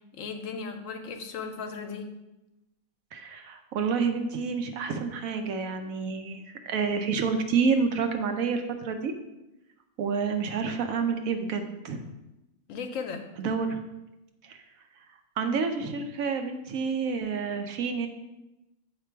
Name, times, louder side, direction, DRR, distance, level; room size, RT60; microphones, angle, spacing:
voice 1, 0.1-2.1 12.7-13.2, left 5 dB, 70° left, 6 dB, 1.0 m, -36 dB
voice 2, 3.1-9.1 10.0-12.1 13.4-13.8 14.4-14.6 15.4-18.1, right 5 dB, 75° right, 6 dB, 1.1 m, -29 dB
8.3 x 2.9 x 4.5 m, 0.95 s
omnidirectional pair, 1.5 m